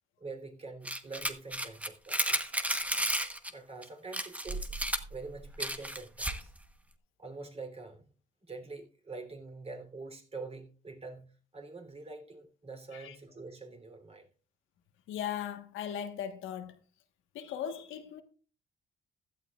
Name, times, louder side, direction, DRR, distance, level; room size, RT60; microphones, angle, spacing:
voice 1, 0.2-2.5 3.5-4.7 5.1-6.5 7.2-8.0 8.4-14.3, right 3 dB, 30° right, 3.4 m, -45 dB
sound 1, 0.9-3.5 3.8-3.9 4.1-6.5, right 1 dB, 5° right, 1.1 m, -33 dB
voice 2, 15.1-16.8 17.3-18.2, left 9 dB, 90° left, 1.4 m, -38 dB
15.5 x 12.0 x 2.4 m
cardioid pair, 90°, 20 cm